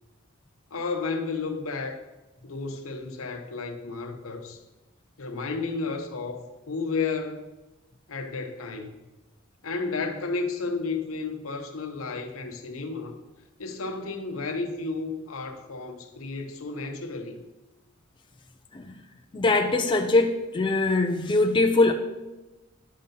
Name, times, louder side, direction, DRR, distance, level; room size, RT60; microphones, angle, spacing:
voice 1, 0.7-2.0 2.4-4.6 5.2-7.4 8.1-8.9 9.6-13.2 13.6-17.4, left 4 dB, 80° left, 5 dB, 0.8 m, -32 dB
voice 2, 19.3-21.9, left 2 dB, 25° left, 4 dB, 0.4 m, -22 dB
11.0 x 5.3 x 2.8 m, 1.1 s
head